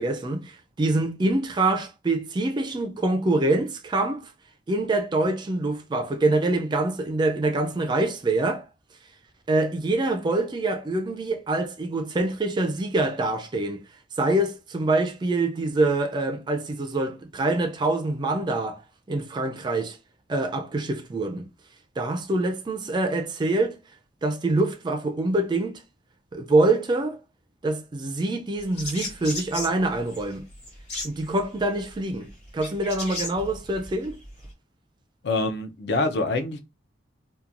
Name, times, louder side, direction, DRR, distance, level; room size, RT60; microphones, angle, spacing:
voice 1, 0.0-4.3 4.7-8.7 9.5-13.8 14.2-18.8 19.1-20.0 20.3-21.5 22.0-23.8 24.2-25.8 26.3-27.2 27.6-30.4 31.0-34.2, right 2 dB, 25° right, 0.3 m, -25 dB
sound 1, 28.6-34.5, left 2 dB, 35° left, 1.0 m, -36 dB
voice 2, 35.2-36.6, left 2 dB, 60° left, 0.4 m, -25 dB
2.8 x 2.2 x 2.4 m
head